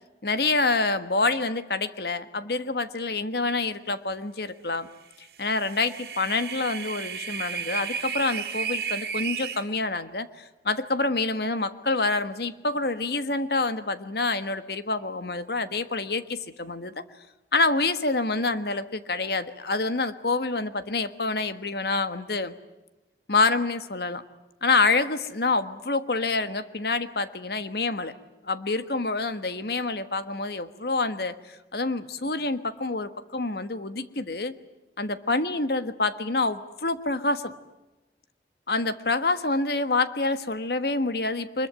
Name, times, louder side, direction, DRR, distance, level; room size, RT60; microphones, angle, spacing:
voice 1, 0.2-4.9 5.2-17.0 17.5-22.5 23.3-24.2 24.6-28.1 28.4-34.5 35.0-37.5 38.7-41.7, left 3 dB, 60° left, 11 dB, 1.4 m, -27 dB
sound 1, 5.3-9.6, right 7 dB, 60° right, 3.0 m, -33 dB
24.5 x 22.0 x 9.1 m, 1.0 s
head